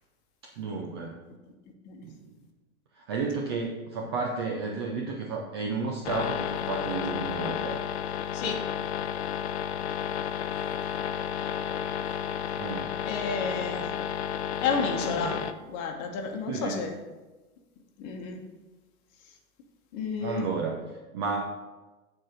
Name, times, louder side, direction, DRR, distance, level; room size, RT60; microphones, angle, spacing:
voice 1, 0.6-1.3 2.0-2.4 2.9-7.8 12.6-12.9 15.0-15.5 16.5-16.8 20.2-21.4, right 4 dB, 20° right, 0 dB, 0.3 m, -32 dB
sound 1, 6.0-15.5, left 9 dB, 50° left, 0.6 m, -32 dB
voice 2, 13.0-13.9 14.6-15.4 15.7-16.9 18.0-18.4 19.9-20.5, left 5 dB, 35° left, 3 dB, 1.3 m, -31 dB
8.5 x 4.4 x 5.1 m, 1.2 s
hypercardioid pair, 115°, 43 cm